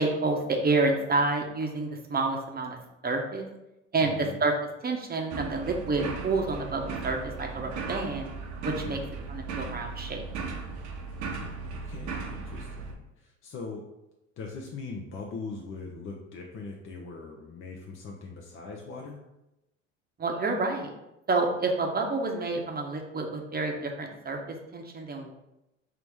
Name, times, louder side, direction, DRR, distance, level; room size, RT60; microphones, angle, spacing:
voice 1, 0.0-2.8 3.0-3.5 3.9-4.5 4.8-8.3 8.6-9.0 9.3-10.2 20.2-20.9 21.3-25.3, right 3 dB, 25° right, 2 dB, 0.9 m, -29 dB
voice 2, 4.0-4.4 8.8-9.1 11.2-13.9 14.4-19.2, left 4 dB, 35° left, 0 dB, 0.7 m, -41 dB
sound 1, 5.3-12.9, right 4 dB, 50° right, 0.9 m, -37 dB
4.9 x 3.0 x 3.5 m, 0.90 s
hypercardioid pair, 70°, 38 cm